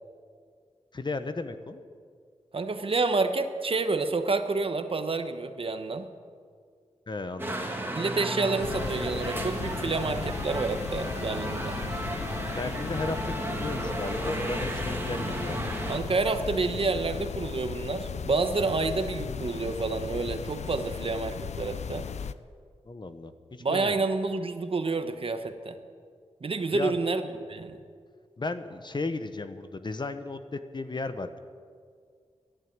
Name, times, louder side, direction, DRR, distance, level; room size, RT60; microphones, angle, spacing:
voice 1, 0.9-1.8 7.1-7.7 12.5-15.7 22.9-24.1 26.7-27.0 28.4-31.4, left 3 dB, 45° left, 10 dB, 1.0 m, -35 dB
voice 2, 2.5-6.1 7.9-11.7 15.3-15.4 15.9-22.1 23.6-25.8 26.4-27.8, right 3 dB, 55° right, 8 dB, 1.2 m, -29 dB
sound 1, 7.4-16.0, right 1 dB, 20° right, 2.4 m, -33 dB
sound 2, 8.6-22.3, left 7 dB, 85° left, 0.5 m, -37 dB
14.0 x 11.5 x 8.9 m, 2.1 s
cardioid pair, 65°, 11 cm